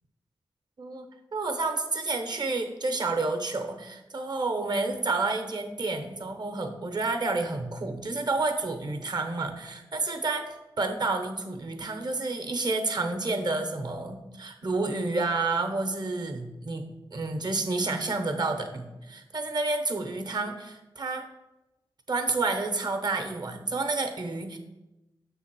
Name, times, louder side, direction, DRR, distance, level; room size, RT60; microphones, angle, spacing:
voice 1, 1.3-10.4 10.8-16.8 17.1-21.3 22.1-24.6, right 3 dB, 55° right, 6 dB, 0.8 m, -30 dB
6.4 x 3.5 x 6.0 m, 1.0 s
wide cardioid pair, 105°, 9 cm